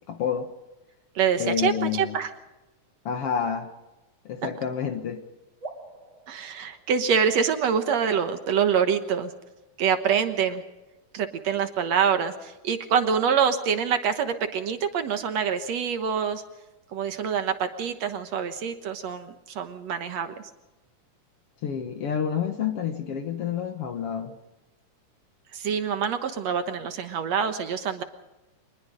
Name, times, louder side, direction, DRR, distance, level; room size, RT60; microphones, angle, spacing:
voice 1, 0.1-0.5 1.4-2.2 3.1-3.7 4.3-5.2 21.6-24.3, left 8 dB, 55° left, 7 dB, 1.9 m, -29 dB
voice 2, 1.2-2.3 6.3-9.3 9.8-10.6 11.1-16.4 16.9-20.3 25.5-28.0, right 7 dB, 65° right, 8 dB, 2.2 m, -25 dB
sound 1, 5.6-7.3 7.8-9.5, right 3 dB, 40° right, 3.0 m, -44 dB
24.5 x 20.5 x 5.1 m, 1.0 s
omnidirectional pair, 3.6 m